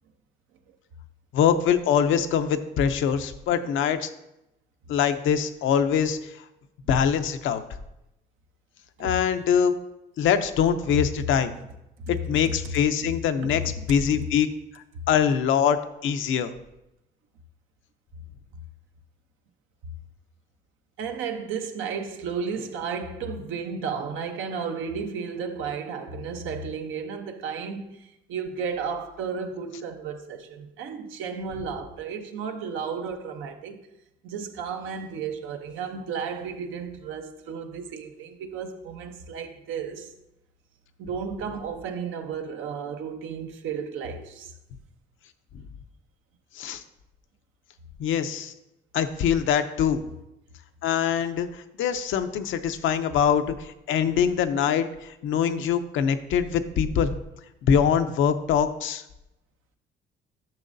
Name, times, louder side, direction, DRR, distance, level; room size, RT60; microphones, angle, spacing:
voice 1, 1.3-4.1 4.9-6.2 6.9-7.6 9.0-9.7 10.2-11.5 12.1-13.6 13.9-14.5 15.1-16.5 46.6-46.8 48.0-48.5 48.9-50.0 50.8-57.1 57.6-59.0, left 8 dB, 80° left, 0.6 m, -23 dB
voice 2, 21.0-33.8 34.2-40.1 41.0-44.5, right 6 dB, 85° right, 0.8 m, -33 dB
10.5 x 6.3 x 2.6 m
cardioid pair, 90°, 20 cm